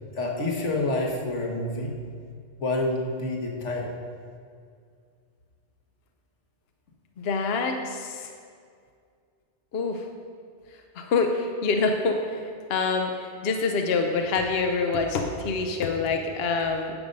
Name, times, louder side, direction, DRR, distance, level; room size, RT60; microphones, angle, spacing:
voice 1, 0.1-1.9 2.6-3.9, left 2 dB, 85° left, 0 dB, 1.7 m, -28 dB
voice 2, 7.2-8.3 9.7-10.1 11.0-16.9, left 4 dB, 65° left, 4 dB, 0.9 m, -26 dB
10.5 x 6.6 x 5.3 m, 2.2 s
omnidirectional pair, 1.2 m